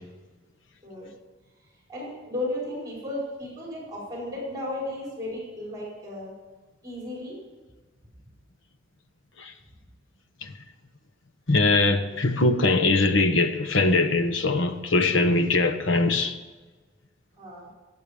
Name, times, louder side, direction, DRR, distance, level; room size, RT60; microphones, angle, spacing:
voice 1, 1.9-6.3 6.8-7.4 17.4-17.7, left 1 dB, 20° right, 4.8 m, -34 dB
voice 2, 11.5-16.4, left 3 dB, 85° left, 1.3 m, -22 dB
22.5 x 8.7 x 5.1 m
head